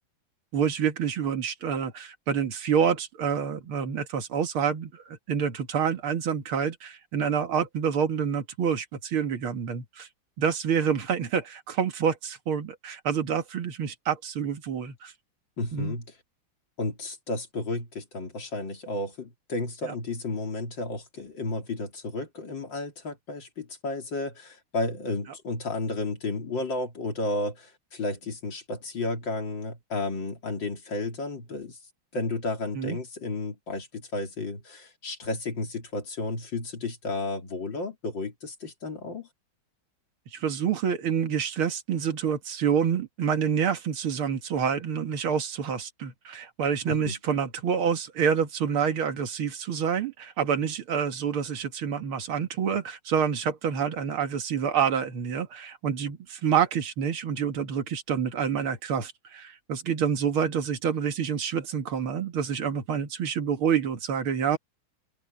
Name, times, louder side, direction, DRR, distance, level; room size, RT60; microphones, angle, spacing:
voice 1, 0.5-10.1 10.4-15.1 15.7-16.0 19.8-19.9 32.8-33.0 40.3-64.6, right 7 dB, 80° right, 2.4 m, -27 dB
voice 2, 15.6-16.1 16.8-31.8 32.1-39.3 46.9-47.2, left 2 dB, 60° left, 4.0 m, -32 dB
open air
omnidirectional pair, 2.3 m